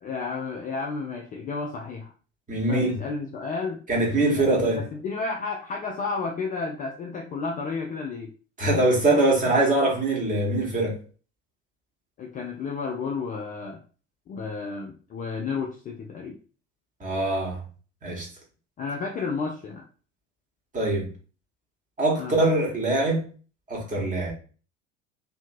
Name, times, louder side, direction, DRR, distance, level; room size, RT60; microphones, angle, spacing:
voice 1, 0.0-2.1 2.7-3.8 4.4-8.3 12.2-13.8 14.3-16.4 18.8-19.8 22.2-22.4, left 4 dB, 25° left, 0.4 m, -32 dB
voice 2, 2.5-2.9 3.9-4.8 8.6-11.0 17.0-17.6 18.0-18.3 20.7-21.1 22.0-23.2 23.7-24.3, right 2 dB, 20° right, 1.2 m, -23 dB
2.8 x 2.6 x 2.5 m
figure-of-eight pair, 65°, 37 cm